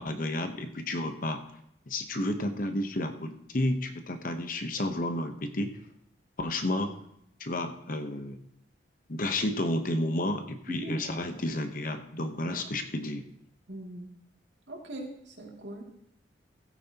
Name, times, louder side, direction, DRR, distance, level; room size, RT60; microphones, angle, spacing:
voice 1, 0.0-1.4 1.9-5.8 6.4-6.9 7.4-8.4 9.1-13.2, left 1 dB, 45° left, 7 dB, 1.0 m, -31 dB
voice 2, 13.7-14.1 14.7-15.8, right 1 dB, 75° right, 0 dB, 2.6 m, -40 dB
16.0 x 9.3 x 2.9 m, 0.74 s
head